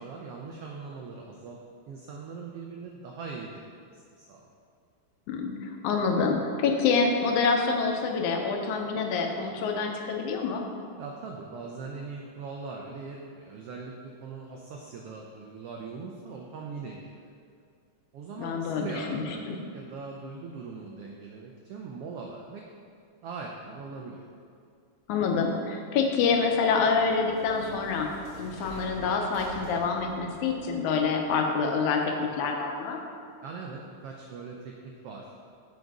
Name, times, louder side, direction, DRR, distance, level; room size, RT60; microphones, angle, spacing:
voice 1, 0.0-1.6 1.9-4.5 11.0-17.3 18.1-22.6 23.2-24.3 33.4-35.3, right 4 dB, 85° right, -1 dB, 1.3 m, -41 dB
voice 2, 5.3-10.6 18.4-19.6 25.1-28.1 28.4-33.0, left 5 dB, 80° left, 3 dB, 2.2 m, -27 dB
sound 1, 25.8-31.3, left 1 dB, 45° left, 2.1 m, -46 dB
8.0 x 5.1 x 4.8 m, 2.3 s
omnidirectional pair, 3.4 m